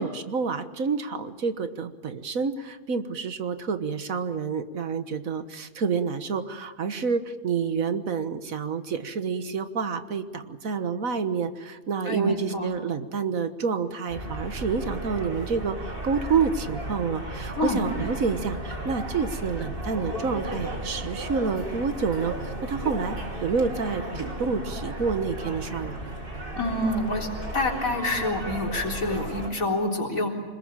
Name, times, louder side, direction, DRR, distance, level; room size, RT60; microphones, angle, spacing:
voice 1, 0.0-26.0, right 5 dB, 80° right, 10 dB, 1.8 m, -28 dB
voice 2, 12.1-12.7 17.6-17.8 26.6-27.3 27.5-30.3, left 1 dB, 80° left, 1 dB, 4.2 m, -27 dB
sound 1, 14.1-29.5, right 1 dB, 40° right, 3.4 m, -34 dB
26.0 x 21.0 x 8.9 m, 1.3 s
omnidirectional pair, 1.4 m